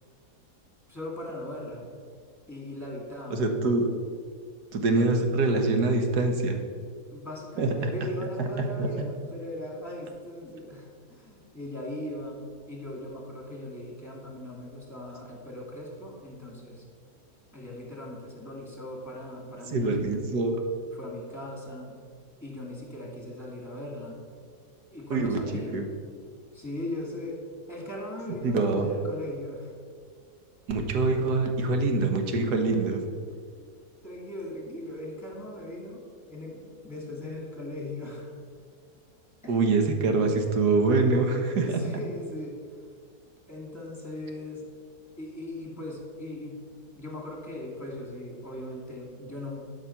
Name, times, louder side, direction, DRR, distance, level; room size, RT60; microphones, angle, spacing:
voice 1, 0.9-1.8 2.5-3.4 7.1-16.8 17.5-20.0 20.9-22.0 22.4-24.2 24.9-25.8 26.5-27.4 27.7-29.7 32.6-32.7 34.0-38.3 39.4-39.6 41.6-42.6 43.5-44.7 45.2-46.6 46.9-49.6, left 1 dB, 10° left, -1 dB, 2.4 m, -39 dB
voice 2, 3.3-3.9 4.7-6.6 7.6-7.9 8.8-8.9 19.7-20.6 25.1-25.4 25.7-25.9 28.4-28.9 30.7-33.0 39.5-41.8, right 3 dB, 85° right, 5 dB, 1.7 m, -24 dB
12.0 x 5.8 x 5.8 m, 2.1 s
omnidirectional pair, 1.7 m